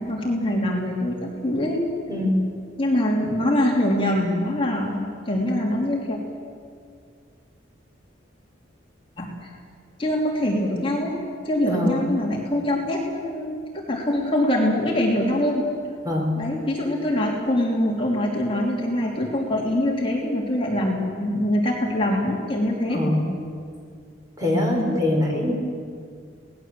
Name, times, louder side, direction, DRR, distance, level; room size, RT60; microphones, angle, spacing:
voice 1, 0.0-1.8 2.8-5.0 5.2-6.2 9.2-9.5 10.0-11.2 11.4-15.6 16.4-23.0, left 1 dB, 30° left, -2 dB, 3.0 m, -24 dB
voice 2, 11.6-12.0 16.0-16.4 22.9-23.2 24.4-25.5, left 1 dB, 20° right, -1 dB, 5.0 m, -23 dB
26.5 x 19.0 x 7.6 m, 2.2 s
head